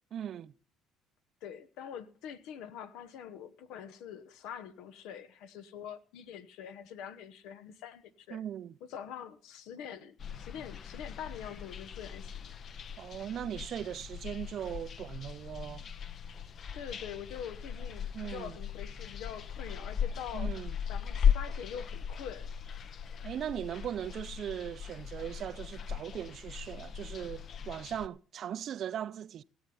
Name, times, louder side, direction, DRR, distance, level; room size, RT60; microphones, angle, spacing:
voice 1, 0.1-0.5 8.3-8.7 13.0-15.9 18.1-18.6 20.3-20.8 23.2-29.4, right 10 dB, 55° right, 0.5 m, -39 dB
voice 2, 1.4-8.4 8.8-12.6 16.7-20.5 20.9-22.5, left 8 dB, 75° left, 0.9 m, -44 dB
sound 1, 10.2-28.1, left 8 dB, 50° left, 0.7 m, -37 dB
17.5 x 7.9 x 5.5 m
supercardioid pair, 80°, 0 cm